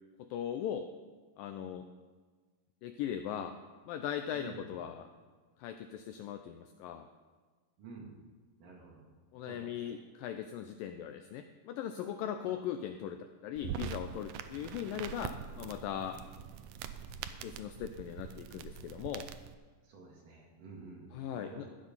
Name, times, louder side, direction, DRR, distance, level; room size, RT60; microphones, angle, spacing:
voice 1, 0.2-0.9 1.4-1.9 2.8-3.5 3.9-5.1 5.6-7.1 9.3-16.2 17.4-19.3 21.1-21.7, left 9 dB, 85° left, 7 dB, 2.0 m, -39 dB
voice 2, 7.8-8.1 8.6-9.1 9.4-9.9 19.8-21.7, right 3 dB, 60° right, -1 dB, 3.5 m, -50 dB
sound 1, 13.6-19.6, right 9 dB, 90° right, 1.8 m, -44 dB
14.5 x 8.7 x 5.4 m, 1.4 s
omnidirectional pair, 4.5 m